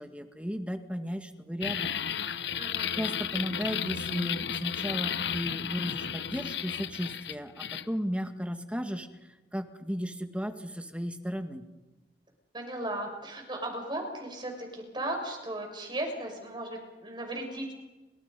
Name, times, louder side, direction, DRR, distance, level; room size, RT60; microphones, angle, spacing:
voice 1, 0.0-2.0 2.3-2.7 3.0-9.1 9.5-11.6, equal, 5° right, 7 dB, 1.8 m, -35 dB
sound 1, 1.6-7.9, left 8 dB, 75° left, 0.9 m, -33 dB
voice 2, 2.5-3.0 12.5-17.7, right 1 dB, 25° right, 2 dB, 6.6 m, -36 dB
30.0 x 26.5 x 5.4 m, 1.1 s
head